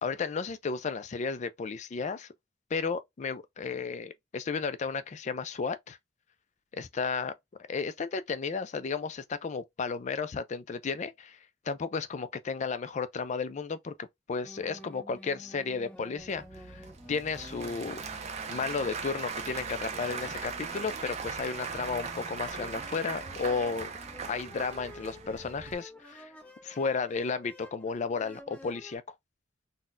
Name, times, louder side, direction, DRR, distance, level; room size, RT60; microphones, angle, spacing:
voice 1, 0.0-2.3 2.7-6.0 6.7-7.3 7.7-11.4 11.6-18.1 18.5-23.9 24.3-26.3 26.6-29.0, left 5 dB, 40° left, 0.4 m, -33 dB
sound 1, 14.4-29.0, equal, 5° left, 0.7 m, -51 dB
Applause / Crowd, 16.2-25.7, right 5 dB, 35° right, 0.5 m, -39 dB
3.9 x 2.1 x 2.5 m
head